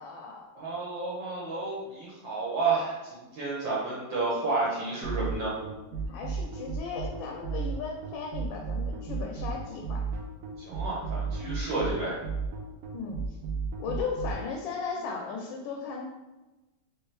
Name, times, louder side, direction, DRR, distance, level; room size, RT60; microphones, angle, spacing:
voice 1, 0.0-0.5 5.9-10.0 12.9-13.2 13.8-16.1, left 5 dB, 75° left, 0 dB, 1.3 m, -36 dB
voice 2, 0.5-3.0 3.3-5.5 10.7-12.2, right 3 dB, 70° right, -6 dB, 1.5 m, -30 dB
sound 1, 5.0-14.4, right 5 dB, 85° right, 0.8 m, -33 dB
3.5 x 3.1 x 3.2 m, 1.1 s
omnidirectional pair, 2.3 m